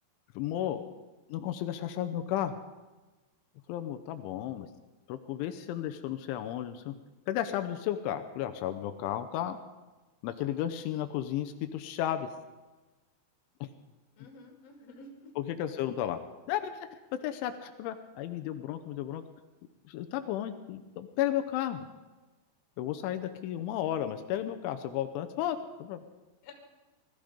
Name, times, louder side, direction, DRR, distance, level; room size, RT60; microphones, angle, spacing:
voice 1, 0.4-0.8 1.3-2.6 3.7-4.7 5.1-6.9 7.3-9.6 10.2-12.3 15.5-16.2 16.5-16.7 17.2-19.2 19.9-21.8 22.8-26.0, left 11 dB, 85° left, 7 dB, 3.1 m, -33 dB
voice 2, 14.2-15.3 26.4-26.5, left 2 dB, 40° left, 2 dB, 3.0 m, -51 dB
20.0 x 13.5 x 5.1 m, 1.2 s
omnidirectional pair, 5.5 m